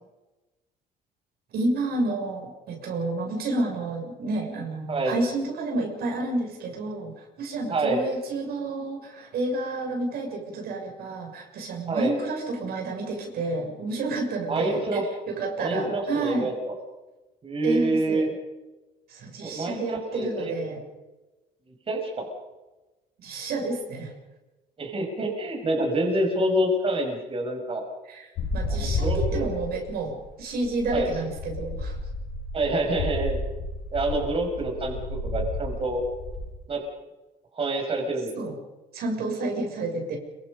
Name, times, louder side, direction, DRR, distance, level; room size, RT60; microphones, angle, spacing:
voice 1, 1.5-14.8 15.3-16.5 17.6-18.3 19.1-20.8 23.2-24.1 28.1-31.9 38.3-38.6 38.9-40.2, right 2 dB, 65° right, 2 dB, 6.8 m, -30 dB
voice 2, 7.7-8.0 11.9-12.1 14.5-15.1 15.6-16.7 17.4-18.3 19.4-20.5 21.9-22.3 24.8-27.8 28.7-29.5 30.9-31.1 32.5-33.4 33.9-36.0 36.7-36.8 37.5-38.3, right 1 dB, 35° right, 2 dB, 6.4 m, -27 dB
sound 1, 28.4-36.5, left 2 dB, 85° left, 6.9 m, -31 dB
26.5 x 24.5 x 5.4 m, 1.1 s
cardioid pair, 110°, 17 cm